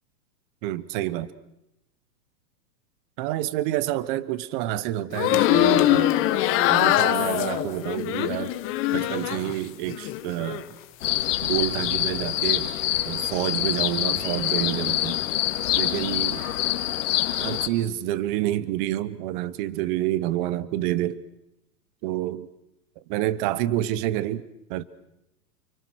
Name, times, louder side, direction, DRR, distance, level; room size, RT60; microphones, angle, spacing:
voice 1, 0.6-1.3 3.2-6.2 6.7-8.6 8.9-10.7 11.4-12.7 13.0-15.2 15.8-16.4 17.4-21.2 22.0-22.5 23.1-24.8, right 14 dB, 30° right, 1.0 m, -28 dB
sound 1, 5.1-9.5 9.9-10.6, left 14 dB, 25° left, 1.4 m, -23 dB
sound 2, 11.0-17.7, left 13 dB, 50° left, 2.3 m, -26 dB
29.5 x 23.5 x 6.4 m
hypercardioid pair, 150°, 47 cm